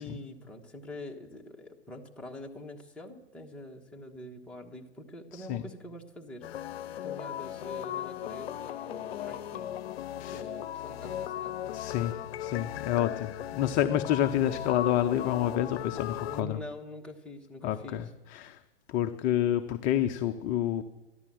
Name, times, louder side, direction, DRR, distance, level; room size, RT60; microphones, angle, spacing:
voice 1, 0.0-6.4 7.0-9.8 10.3-12.1 16.3-18.1, left 1 dB, 5° left, -1 dB, 1.3 m, -45 dB
sound 1, 6.4-16.4, left 12 dB, 65° left, 0.7 m, -37 dB
voice 2, 11.7-16.6 17.6-18.0 18.3-18.6 18.9-20.8, left 11 dB, 25° left, 8 dB, 0.5 m, -28 dB
13.5 x 11.0 x 7.6 m, 1.0 s
hypercardioid pair, 130°, 33 cm